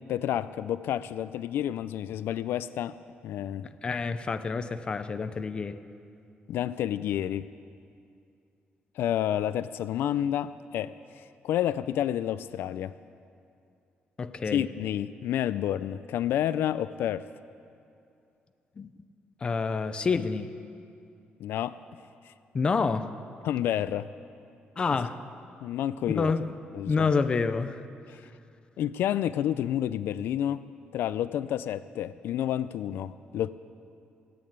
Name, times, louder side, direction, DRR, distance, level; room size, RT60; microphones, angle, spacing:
voice 1, 0.1-2.9 3.2-3.7 6.5-7.5 9.0-13.0 14.5-17.3 21.4-21.7 22.3-22.4 23.4-24.1 24.9-25.0 25.6-26.3 26.7-27.1 28.1-28.2 28.8-30.6 30.9-33.5, left 11 dB, 80° left, 15 dB, 0.4 m, -29 dB
voice 2, 3.6-5.8 14.2-14.6 18.8-18.9 19.4-20.5 22.5-23.1 24.8-25.2 26.1-26.6 26.8-27.8, left 4 dB, 25° left, 11 dB, 0.5 m, -28 dB
16.0 x 8.7 x 8.7 m, 2.5 s
cardioid pair, 165°, 4 cm